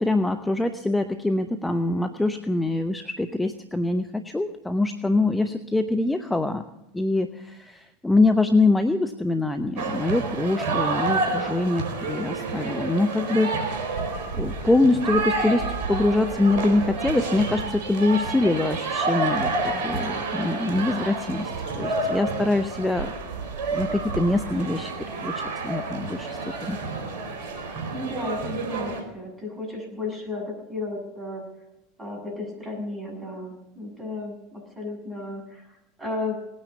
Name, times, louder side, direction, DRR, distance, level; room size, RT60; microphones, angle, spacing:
voice 1, 0.0-6.6 6.9-13.9 14.3-15.6 15.9-21.5 21.8-23.1 23.7-24.9 25.2-26.8, left 2 dB, 10° left, 9 dB, 1.0 m, -24 dB
sound 1, 9.8-29.0, right 3 dB, 55° right, 4.2 m, -29 dB
voice 2, 27.9-31.4 32.0-35.7 36.0-36.4, left 2 dB, 20° right, 1 dB, 7.7 m, -33 dB
19.0 x 9.8 x 7.1 m, 0.92 s
hypercardioid pair, 80°, 0 cm